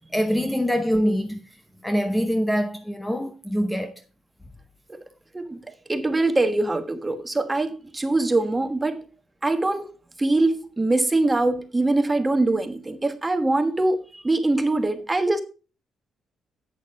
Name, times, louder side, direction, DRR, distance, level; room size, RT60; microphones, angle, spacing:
voice 1, 0.1-1.4 1.8-4.0, equal, 5° left, 0.8 m, -24 dB
voice 2, 5.3-9.1 9.4-9.9 10.2-15.4, right 2 dB, 20° right, 1.3 m, -23 dB
8.5 x 6.4 x 4.7 m
cardioid pair, 90°, 0 cm